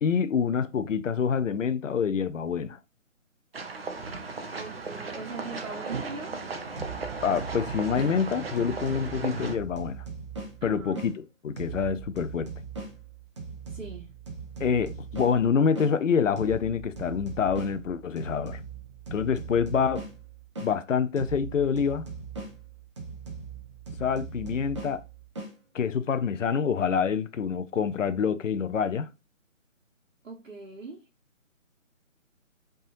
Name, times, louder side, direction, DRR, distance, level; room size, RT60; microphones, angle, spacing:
voice 1, 0.0-2.8 7.2-10.0 10.6-12.5 14.6-18.6 19.1-20.0 20.6-22.1 24.0-25.0 25.7-29.1, left 6 dB, 70° left, 0.7 m, -26 dB
sound 1, 3.5-9.6, right 4 dB, 50° right, 0.9 m, -36 dB
voice 2, 4.5-6.4 10.6-11.0 13.7-14.1 30.2-31.0, right 3 dB, 75° right, 1.6 m, -41 dB
sound 2, 6.8-11.1 11.6-15.9 16.4-20.7 21.2-25.5, right 4 dB, 20° right, 0.9 m, -40 dB
5.5 x 3.7 x 2.5 m
hypercardioid pair, 165°, 39 cm